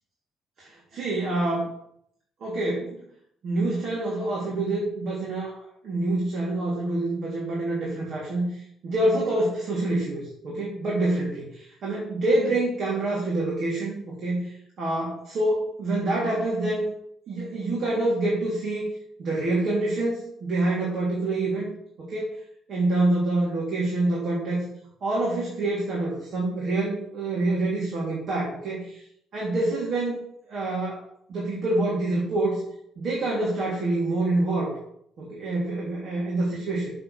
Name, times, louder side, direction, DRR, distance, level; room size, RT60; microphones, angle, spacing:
voice 1, 0.6-1.7 2.4-3.0 3.4-16.8 17.3-18.8 19.2-21.7 22.0-22.3 22.7-24.7 25.0-29.0 29.3-30.2 30.5-31.0 31.3-32.6 33.0-34.8 35.2-36.9, right 2 dB, 55° right, -5 dB, 3.4 m, -26 dB
7.6 x 6.6 x 6.7 m, 0.70 s
cardioid pair, 135°, 0 cm